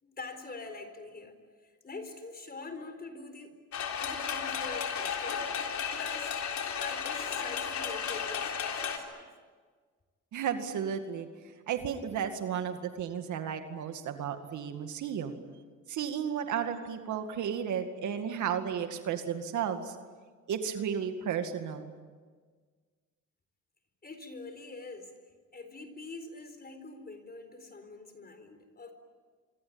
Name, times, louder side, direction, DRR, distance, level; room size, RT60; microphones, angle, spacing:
voice 1, 0.0-3.5 4.0-5.5 5.9-6.4 6.8-9.3 24.0-25.1 25.5-28.9, left 3 dB, 30° left, 8 dB, 4.3 m, -45 dB
sound 1, 3.7-9.0, left 7 dB, 70° left, 3.7 m, -34 dB
voice 2, 10.3-11.3 11.7-15.4 15.9-20.0 20.5-21.9, right 8 dB, 75° right, 7 dB, 2.2 m, -33 dB
26.0 x 24.5 x 8.8 m, 1.5 s
cardioid pair, 90°, 30 cm